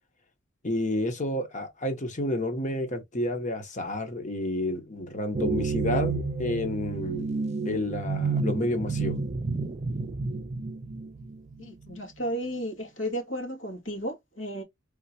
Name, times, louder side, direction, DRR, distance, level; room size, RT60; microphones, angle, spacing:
voice 1, 0.6-7.3 7.6-9.2, left 1 dB, 40° left, 1.2 m, -30 dB
sound 1, 5.3-12.0, right 4 dB, 35° right, 0.4 m, -30 dB
voice 2, 11.6-14.6, equal, 85° left, 2.3 m, -33 dB
4.3 x 3.7 x 2.9 m
head